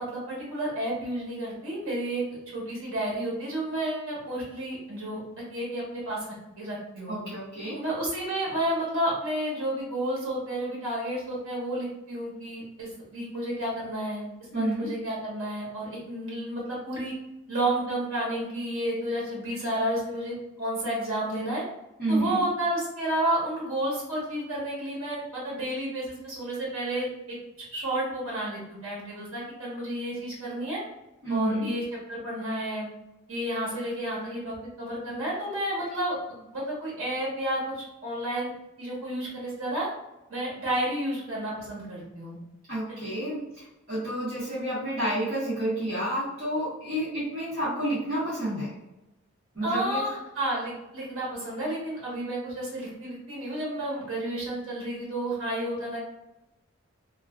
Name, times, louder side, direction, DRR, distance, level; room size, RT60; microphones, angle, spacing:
voice 1, 0.0-2.2 2.5-5.2 5.5-6.2 6.6-7.2 7.7-14.3 14.5-17.1 17.5-21.6 22.1-30.8 31.3-31.8 32.1-32.9 33.3-38.5 38.8-39.9 40.3-42.4 42.9-43.0 49.6-56.0, right 1 dB, 80° right, -5 dB, 1.0 m, -31 dB
voice 2, 7.1-7.8 14.5-14.9 22.0-22.5 31.2-31.7 42.7-48.7 49.5-50.0, right 1 dB, 45° right, -10 dB, 1.3 m, -30 dB
3.0 x 2.4 x 2.3 m, 0.95 s
head